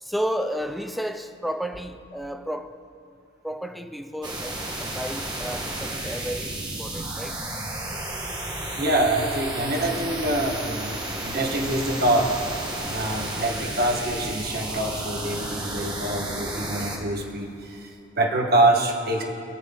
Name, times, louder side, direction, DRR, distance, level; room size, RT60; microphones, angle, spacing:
voice 1, 0.0-2.8 3.4-7.4, equal, ahead, 7 dB, 0.3 m, -32 dB
sound 1, 4.2-17.0, right 1 dB, 20° right, 1.4 m, -32 dB
voice 2, 8.8-12.3 12.8-19.2, right 1 dB, 45° right, 1 dB, 1.3 m, -25 dB
21.0 x 7.4 x 3.8 m, 2.7 s
head